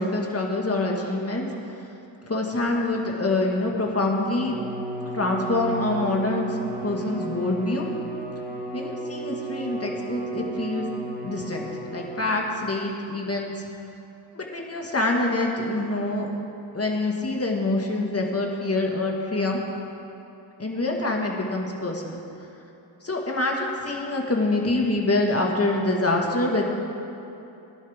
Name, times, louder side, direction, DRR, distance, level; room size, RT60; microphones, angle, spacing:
voice 1, 0.0-1.5 2.2-4.6 5.1-7.9 8.7-10.9 11.2-13.5 14.4-16.3 16.7-19.6 20.6-22.2 23.0-26.7, left 2 dB, 30° left, 0 dB, 1.8 m, -25 dB
Bowed string instrument, 4.3-12.6, right 3 dB, 20° right, 1.7 m, -34 dB
17.5 x 11.0 x 3.6 m, 2.9 s
wide cardioid pair, 65°, 47 cm